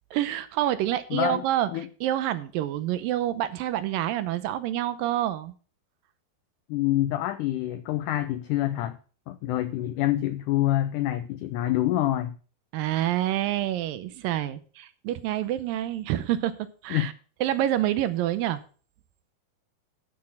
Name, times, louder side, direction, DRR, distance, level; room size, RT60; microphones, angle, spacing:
voice 1, 0.1-5.5 12.7-16.5 16.8-17.1 17.4-18.6, right 12 dB, 80° right, 12 dB, 2.3 m, -27 dB
voice 2, 1.1-1.4 1.7-1.9 6.7-9.0 9.3-12.4 16.9-17.1, left 14 dB, 90° left, 11 dB, 1.8 m, -26 dB
12.0 x 6.5 x 5.5 m, 0.40 s
omnidirectional pair, 4.3 m